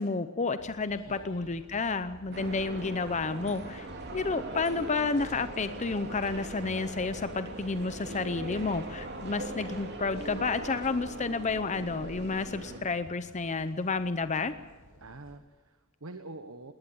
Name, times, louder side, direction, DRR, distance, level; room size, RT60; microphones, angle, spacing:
voice 1, 0.0-14.5, left 4 dB, 35° left, 11 dB, 0.7 m, -31 dB
sound 1, 0.6-15.4, left 1 dB, 80° left, 4.6 m, -56 dB
voice 2, 1.0-1.6 15.0-16.7, right 2 dB, 75° right, 8 dB, 1.2 m, -47 dB
sound 2, 2.3-12.8, right 2 dB, 50° right, 2.9 m, -40 dB
20.0 x 19.0 x 7.2 m, 1.4 s
head